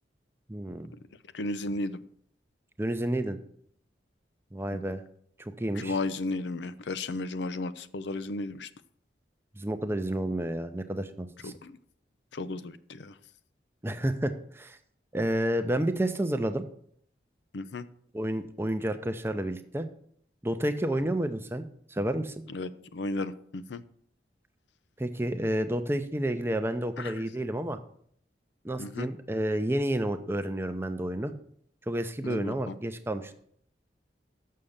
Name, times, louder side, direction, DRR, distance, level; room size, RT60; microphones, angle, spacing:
voice 1, 0.5-0.9 2.8-3.4 4.5-5.0 5.4-6.0 9.6-11.5 13.8-14.8 15.1-16.6 18.1-19.9 20.4-21.6 21.9-22.4 25.0-27.8 28.6-31.3 31.9-33.3, right 1 dB, 15° right, 9 dB, 0.5 m, -30 dB
voice 2, 1.3-2.0 4.7-4.8 5.8-8.7 11.4-11.8 12.3-13.1 17.5-17.8 22.5-23.8 27.0-27.1 28.8-29.1 32.2-32.8, left 2 dB, 80° left, 13 dB, 0.5 m, -34 dB
6.5 x 6.5 x 7.2 m, 0.65 s
head